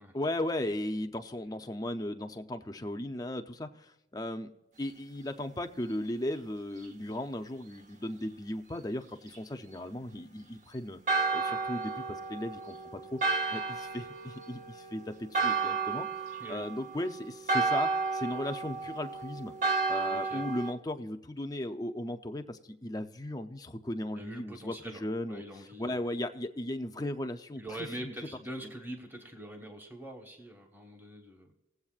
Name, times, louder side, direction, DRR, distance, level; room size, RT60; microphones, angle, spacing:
voice 1, 0.1-4.5 4.8-11.0 11.3-16.1 16.5-19.5 19.9-25.4 25.8-28.1, left 1 dB, 20° left, 7 dB, 0.5 m, -36 dB
Church bell, 11.1-20.7, right 4 dB, 45° right, 0.8 m, -32 dB
voice 2, 20.1-20.5 24.1-25.0 25.3-26.0 27.5-31.5, right 1 dB, 10° right, 3 dB, 1.2 m, -44 dB
19.0 x 8.0 x 2.4 m, 0.95 s
head